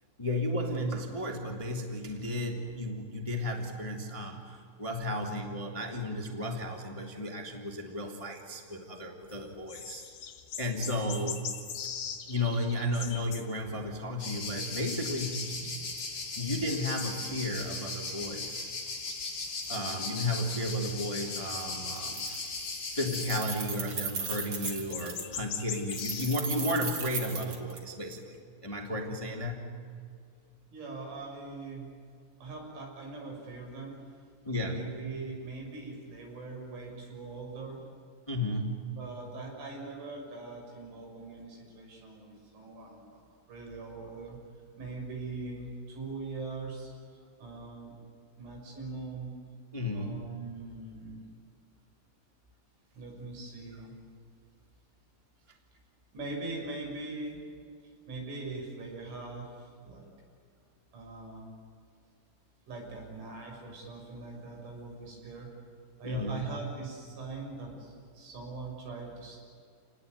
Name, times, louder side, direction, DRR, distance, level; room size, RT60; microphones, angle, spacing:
voice 1, 0.2-10.0 10.6-11.5 12.3-15.6 16.4-18.7 19.7-22.4 22.9-28.4 28.6-29.8 34.4-34.9 38.3-38.9 49.7-50.3 66.0-66.4, left 1 dB, 10° left, 2 dB, 1.7 m, -33 dB
sound 1, 9.2-14.0 14.4-16.2 16.5-18.5 19.0-21.0 21.3-22.1 22.5-26.4, left 8 dB, 60° left, 3.5 m, -42 dB
sound 2, 14.2-23.4, left 3 dB, 45° left, 5.7 m, -38 dB
Keys jangling, 21.5-21.6 21.9-22.7 22.9-25.3 25.9-28.2, right 4 dB, 40° right, 2.3 m, -37 dB
voice 2, 30.7-31.9 32.4-34.0 34.5-37.8 38.9-43.2 43.5-44.4 44.8-46.9 47.4-47.9 48.4-49.3 49.9-51.2 52.9-53.9 56.1-57.4 58.1-60.1 60.9-61.5 62.7-65.5 66.0-69.4, right 3 dB, 85° right, 0 dB, 9.0 m, -41 dB
29.0 x 19.5 x 9.5 m, 2.3 s
omnidirectional pair, 5.3 m